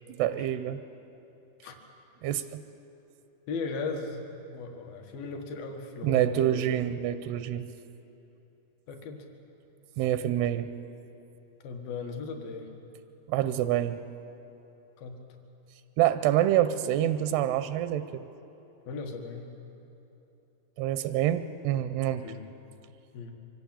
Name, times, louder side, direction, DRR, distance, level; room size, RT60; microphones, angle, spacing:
voice 1, 0.2-0.8 2.2-2.6 6.0-7.7 10.0-10.7 13.3-14.0 16.0-18.2 20.8-22.2, right 12 dB, 85° right, 11 dB, 2.7 m, -26 dB
voice 2, 3.5-6.9 8.9-9.3 11.6-12.7 15.0-15.2 18.9-19.5 22.2-22.5 23.1-23.4, left 4 dB, 70° left, 4 dB, 3.3 m, -37 dB
24.5 x 15.0 x 8.6 m, 3.0 s
omnidirectional pair, 4.6 m